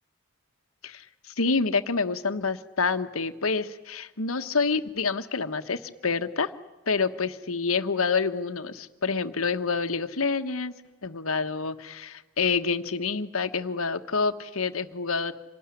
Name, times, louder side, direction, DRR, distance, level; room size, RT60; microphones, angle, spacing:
voice 1, 0.8-6.5 6.9-10.7 11.0-15.3, left 4 dB, 70° left, 9 dB, 1.3 m, -27 dB
27.0 x 19.0 x 9.9 m, 1.1 s
head